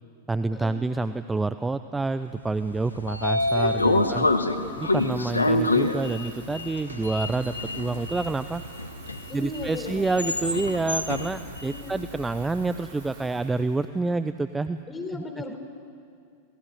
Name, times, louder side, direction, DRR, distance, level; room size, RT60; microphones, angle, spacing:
voice 1, 0.3-4.3 4.8-8.6 9.3-14.8 15.1-15.2 15.5-15.6, right 3 dB, 10° right, 12 dB, 0.7 m, -28 dB
Sliding door, 2.6-12.8, left 2 dB, 80° left, 1.5 m, -27 dB
sound 1, 2.9-4.6 5.4-5.5 6.6-7.6, equal, 80° right, 5.3 m, -49 dB
voice 2, 3.6-4.8 9.3-10.1 11.6-11.9 14.9-15.6, left 2 dB, 15° left, 5 dB, 4.7 m, -37 dB
Water tap faucet / Fill (with liquid), 4.5-14.7, right 5 dB, 45° right, 5.3 m, -50 dB
27.5 x 19.0 x 9.3 m, 2.3 s
figure-of-eight pair, 90°, 0 cm